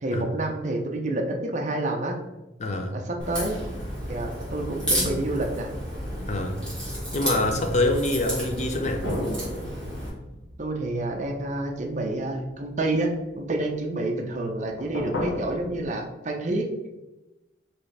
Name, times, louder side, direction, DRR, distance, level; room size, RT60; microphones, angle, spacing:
voice 1, 0.0-2.2 2.9-3.6 4.1-5.7 10.6-16.7, right 2 dB, 40° right, 2 dB, 0.6 m, -28 dB
voice 2, 2.6-3.0 6.3-6.6 7.1-9.1, left 2 dB, 40° left, 5 dB, 0.5 m, -25 dB
Crack, 3.2-10.1, equal, 5° left, 1.4 m, -32 dB
sound 1, 6.1-7.8 9.0-13.2 14.3-15.8, left 1 dB, 90° left, 0.9 m, -36 dB
4.4 x 3.2 x 3.3 m, 1.0 s
head